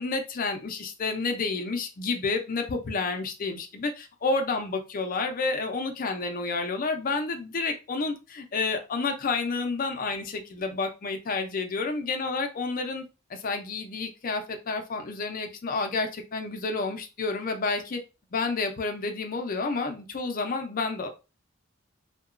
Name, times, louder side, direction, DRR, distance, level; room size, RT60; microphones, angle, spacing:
voice 1, 0.0-13.0 13.3-18.0 18.3-21.1, left 3 dB, 45° left, 5 dB, 0.5 m, -30 dB
2.8 x 2.2 x 2.4 m, 0.30 s
head